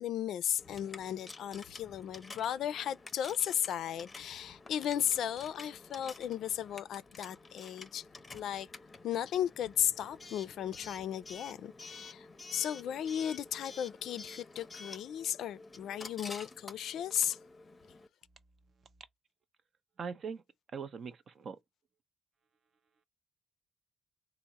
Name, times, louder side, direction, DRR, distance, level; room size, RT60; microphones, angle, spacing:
voice 1, 0.0-8.0 8.3-8.7 9.0-17.4, left 10 dB, 75° left, 0.3 m, -35 dB
Coin (dropping) / Alarm, 0.6-18.1, left 3 dB, 25° left, 0.6 m, -50 dB
voice 2, 20.0-20.4 20.7-21.6, right 6 dB, 50° right, 0.6 m, -41 dB
3.4 x 2.0 x 4.0 m
cardioid pair, 90°, 0 cm